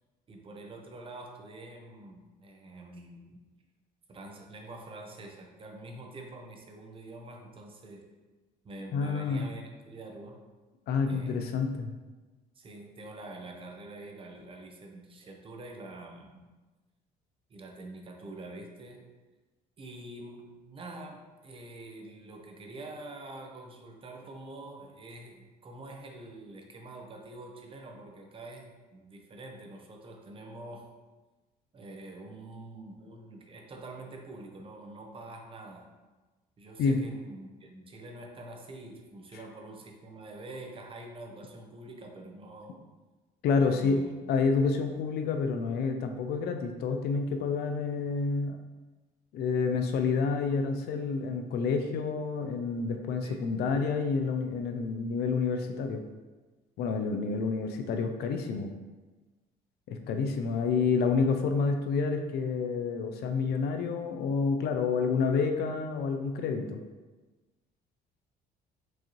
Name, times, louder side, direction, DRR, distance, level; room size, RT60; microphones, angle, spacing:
voice 1, 0.3-3.4 4.1-8.1 8.6-10.4 11.1-11.5 12.6-16.4 17.5-19.1 19.8-30.9 31.7-35.9 36.6-42.8 43.7-44.2 53.2-53.4, right 2 dB, 30° right, 2 dB, 0.6 m, -46 dB
voice 2, 8.9-9.4 10.9-11.9 36.8-37.0 43.4-44.0 44.3-48.6 49.3-56.0 56.8-58.7 59.9-66.8, left 5 dB, 70° left, 5 dB, 0.5 m, -29 dB
4.6 x 2.7 x 3.0 m, 1.2 s
cardioid pair, 110°, 17 cm